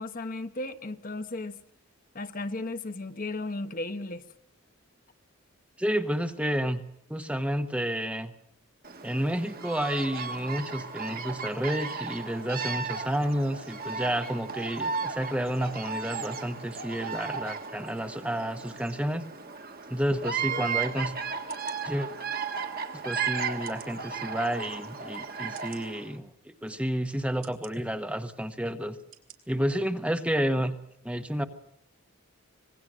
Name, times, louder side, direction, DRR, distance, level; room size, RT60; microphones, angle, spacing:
voice 1, 0.0-1.6 2.1-4.2, left 2 dB, 40° left, 1.0 m, -35 dB
voice 2, 5.8-6.8 7.1-8.3 9.0-19.2 19.9-21.1 21.8-22.1 23.0-29.0 29.5-30.8 31.0-31.4, equal, 5° right, 1.2 m, -30 dB
Bird vocalization bird call bird song, 8.8-26.1, right 5 dB, 40° right, 1.7 m, -35 dB
sound 1, 20.8-20.9 21.5-21.8 22.5-22.6 23.6-24.0 24.7-24.8 25.5-25.8 26.6-26.8 27.4-27.7 28.4-28.6 29.1-29.4 29.8-29.9, right 13 dB, 65° right, 3.6 m, -50 dB
26.0 x 21.0 x 6.3 m
head